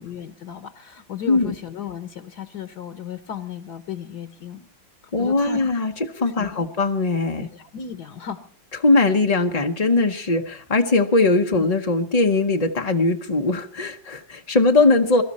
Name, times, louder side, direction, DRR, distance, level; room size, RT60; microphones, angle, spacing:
voice 1, 0.0-4.6 5.2-6.1 6.4-6.7 7.4-8.4 11.5-11.7, left 9 dB, 60° left, 11 dB, 1.5 m, -35 dB
voice 2, 5.1-7.5 8.8-15.2, left 3 dB, 35° left, 3 dB, 0.6 m, -20 dB
22.5 x 13.0 x 4.2 m, 0.40 s
omnidirectional pair, 2.0 m